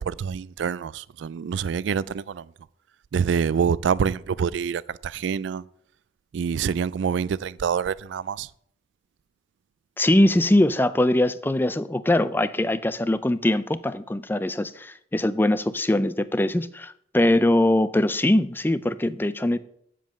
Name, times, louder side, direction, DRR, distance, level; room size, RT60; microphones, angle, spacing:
voice 1, 0.0-2.5 3.1-5.6 6.3-8.5, right 7 dB, 70° right, 0.3 m, -26 dB
voice 2, 10.0-19.6, left 1 dB, 10° left, 0.4 m, -22 dB
7.6 x 7.5 x 6.7 m
head